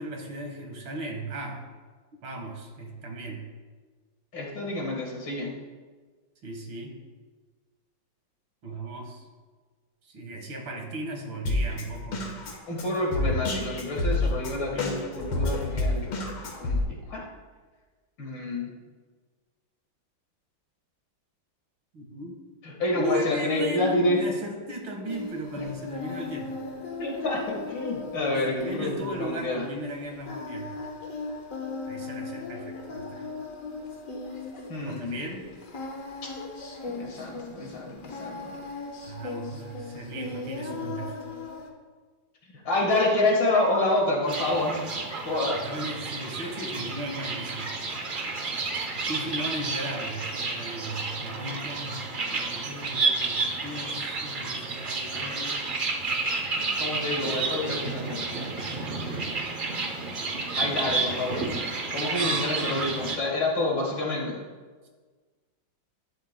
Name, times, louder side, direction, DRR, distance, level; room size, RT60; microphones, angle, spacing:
voice 1, 0.0-1.6 2.2-3.4 6.4-6.9 8.6-9.2 10.0-12.3 13.6-13.7 14.7-15.0 21.9-22.4 22.9-26.6 28.4-30.7 31.9-33.3 34.8-35.5 39.0-41.2 45.5-47.7 49.1-52.0 52.3-55.6 60.7-61.3, right 1 dB, 80° right, 3 dB, 2.3 m, -36 dB
voice 2, 4.3-5.5 12.7-14.7 15.1-16.0 16.6-17.3 18.2-18.7 22.6-24.2 25.6-25.7 27.0-29.7 34.7-35.2 36.9-38.5 42.7-44.8 45.2-45.6 56.5-58.5 60.5-61.5 61.9-64.4, left 2 dB, 65° left, -1 dB, 2.4 m, -28 dB
Drum kit, 11.5-16.8, left 2 dB, 90° left, 2.3 m, -28 dB
Singing, 25.0-41.7, left 3 dB, 45° left, 1.4 m, -38 dB
sound 1, 44.3-63.2, right 3 dB, 55° right, 0.5 m, -31 dB
12.5 x 11.5 x 2.2 m, 1.4 s
omnidirectional pair, 2.2 m